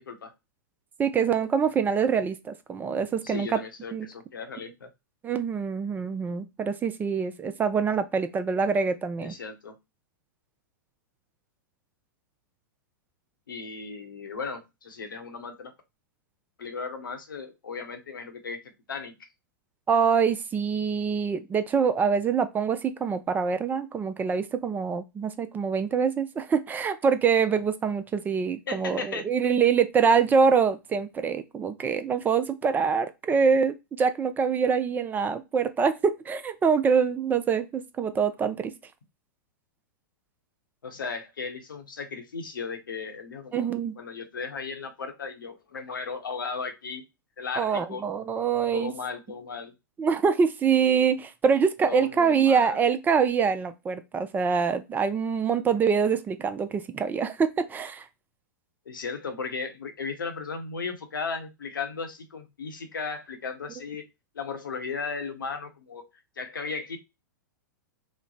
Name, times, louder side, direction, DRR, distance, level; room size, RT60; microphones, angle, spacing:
voice 1, 1.0-3.6 3.9-4.1 5.2-9.3 19.9-38.7 43.5-43.9 47.6-48.9 50.0-58.1, right 6 dB, 15° right, 0.4 m, -25 dB
voice 2, 3.2-4.9 9.2-9.7 13.5-15.7 16.6-18.6 18.9-19.1 28.7-29.3 40.8-43.7 44.0-47.0 47.4-48.0 48.7-49.7 51.8-52.8 58.9-64.0 64.3-66.0 66.4-67.0, left 5 dB, 85° left, 0.8 m, -36 dB
3.1 x 2.0 x 3.8 m
hypercardioid pair, 110°, 11 cm